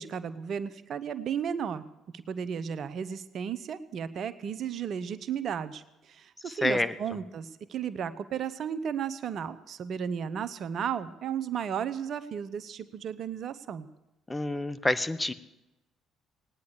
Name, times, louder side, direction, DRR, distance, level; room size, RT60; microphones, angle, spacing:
voice 1, 0.0-1.8 2.1-13.9, right 8 dB, 55° right, 13 dB, 0.8 m, -34 dB
voice 2, 6.5-6.9 14.3-15.3, left 2 dB, 15° left, 13 dB, 1.0 m, -28 dB
18.0 x 9.7 x 8.2 m, 0.95 s
hypercardioid pair, 55°, 0 cm